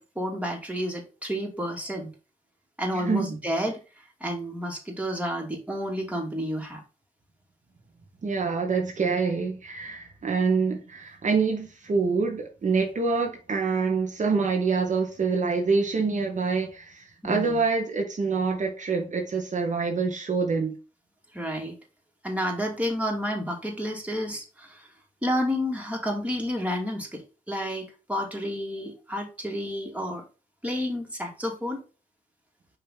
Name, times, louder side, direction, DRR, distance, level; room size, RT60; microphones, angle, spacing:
voice 1, 0.0-2.1 2.8-3.8 4.2-6.8 17.2-17.6 21.3-21.7 22.2-24.9 25.2-30.2 30.6-31.8, equal, 10° right, 2.3 m, -30 dB
voice 2, 3.0-3.3 8.2-20.7, right 4 dB, 55° right, 1.4 m, -26 dB
5.8 x 3.2 x 5.4 m
cardioid pair, 60°, 15 cm